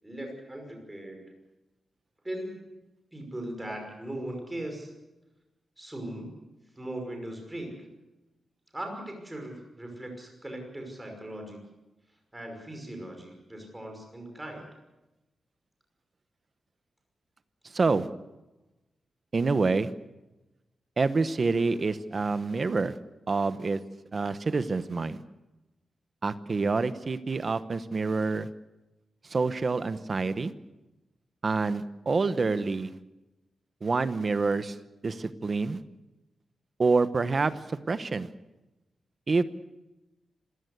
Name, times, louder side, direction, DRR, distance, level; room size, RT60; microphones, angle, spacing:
voice 1, 0.0-1.3 2.2-2.8 3.1-4.9 5.8-6.3 6.8-7.9 8.7-11.6 12.3-14.7, right 1 dB, 10° right, 3 dB, 5.5 m, -39 dB
voice 2, 17.7-18.1 19.3-19.9 21.0-23.0 23.3-23.8 24.1-25.2 26.2-28.5 29.3-30.5 31.4-32.9 33.8-34.8 35.0-35.8 36.8-38.3 39.3-39.4, right 4 dB, 30° right, 13 dB, 1.0 m, -27 dB
26.5 x 16.0 x 8.1 m, 1.0 s
wide cardioid pair, 175°, 0 cm